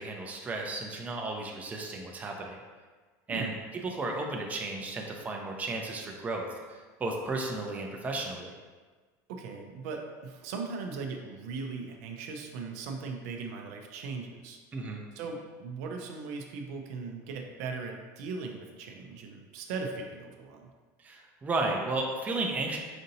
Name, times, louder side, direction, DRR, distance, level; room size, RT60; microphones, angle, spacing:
voice 1, 0.0-2.6 3.3-8.5 14.7-15.0 21.0-22.8, right 2 dB, 15° right, 1 dB, 0.5 m, -34 dB
voice 2, 3.3-3.6 9.3-14.6 15.1-20.7, right 4 dB, 75° right, 3 dB, 0.5 m, -38 dB
5.1 x 2.7 x 2.7 m, 1.4 s
supercardioid pair, 130°, 9 cm